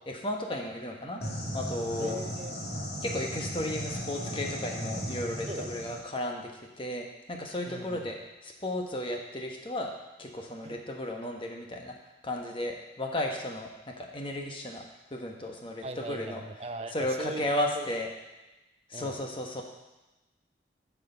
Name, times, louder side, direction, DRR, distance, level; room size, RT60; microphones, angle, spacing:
voice 1, 0.1-1.2 1.5-2.2 3.0-6.5 6.8-9.9 10.2-11.9 12.2-14.8 15.1-16.4 16.9-18.1 18.9-19.6, left 1 dB, 30° left, 1 dB, 1.1 m, -34 dB
sound 1, 1.2-6.0, equal, 60° left, 2.1 m, -36 dB
voice 2, 2.0-2.6 5.5-5.8 7.7-8.1 10.6-10.8 15.8-17.9 18.9-19.3, right 2 dB, 35° right, 6 dB, 0.6 m, -40 dB
9.4 x 4.9 x 6.9 m, 1.1 s
head